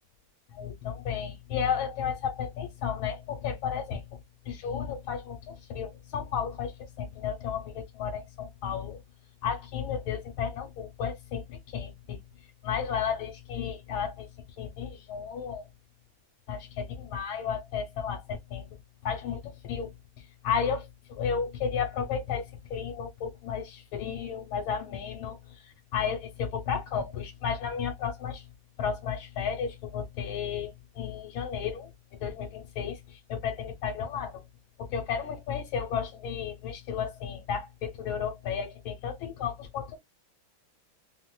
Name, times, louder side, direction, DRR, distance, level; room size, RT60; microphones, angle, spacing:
voice 1, 0.5-4.2 4.4-9.0 9.4-12.2 12.6-14.3 14.6-15.7 16.5-18.6 19.0-19.9 20.2-28.5 28.8-31.9 32.2-34.4 34.8-40.0, left 7 dB, 85° left, 1.7 m, -33 dB
4.9 x 2.1 x 2.2 m
omnidirectional pair, 2.2 m